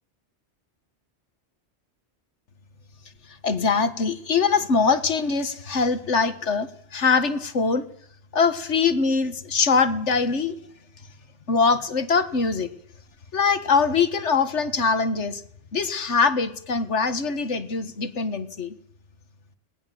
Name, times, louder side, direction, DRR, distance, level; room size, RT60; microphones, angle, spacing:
voice 1, 3.4-7.9 8.3-10.6 11.5-12.7 13.3-15.4 15.7-18.8, left 5 dB, 75° left, 11 dB, 1.8 m, -23 dB
22.0 x 19.0 x 7.7 m, 0.66 s
omnidirectional pair, 1.2 m